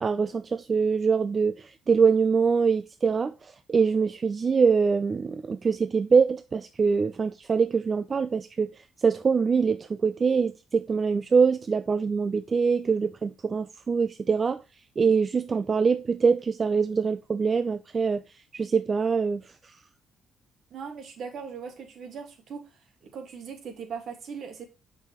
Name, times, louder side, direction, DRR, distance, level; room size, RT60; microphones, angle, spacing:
voice 1, 0.0-8.7 9.0-14.6 15.0-18.2 18.5-19.4, right 5 dB, 40° right, 0.4 m, -24 dB
voice 2, 20.7-22.6 23.0-24.7, right 6 dB, 65° right, 1.6 m, -39 dB
6.3 x 5.4 x 3.0 m
cardioid pair, 90°, 0 cm